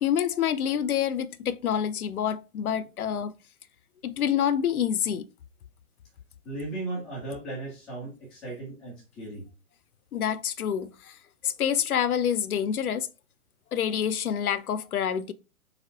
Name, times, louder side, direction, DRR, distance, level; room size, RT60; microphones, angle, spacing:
voice 1, 0.0-3.3 4.0-5.3 10.1-11.2 11.4-13.1 13.7-15.3, left 9 dB, 75° left, 0.6 m, -27 dB
voice 2, 6.4-9.4, right 2 dB, ahead, 0.4 m, -36 dB
4.1 x 4.1 x 2.7 m
figure-of-eight pair, 120°, 44 cm